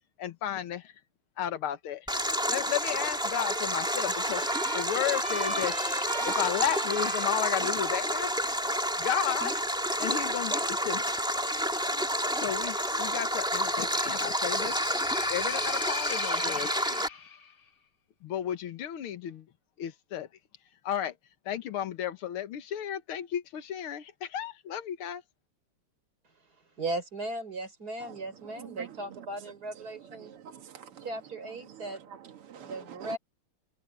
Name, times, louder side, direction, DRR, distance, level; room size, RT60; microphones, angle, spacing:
voice 1, 0.2-0.9 1.4-2.1 2.5-4.4 4.7-5.8 6.2-8.5 9.0-9.6 10.0-11.0 12.4-14.8 15.3-17.0 18.2-19.5 19.8-20.3 20.8-21.1 21.5-25.2, left 10 dB, 75° left, 2.1 m, -33 dB
Stream, 2.1-17.1, equal, ahead, 2.6 m, -29 dB
Trumpet, 2.5-8.2, right 3 dB, 25° right, 1.3 m, -39 dB
sound 1, 13.8-17.5, left 6 dB, 45° left, 0.7 m, -39 dB
voice 2, 26.2-30.3 31.0-32.0 32.6-33.2, right 2 dB, 45° right, 5.3 m, -37 dB
voice 3, 28.4-29.3 30.2-31.1 31.7-33.2, right 9 dB, 80° right, 2.7 m, -46 dB
omnidirectional pair, 2.4 m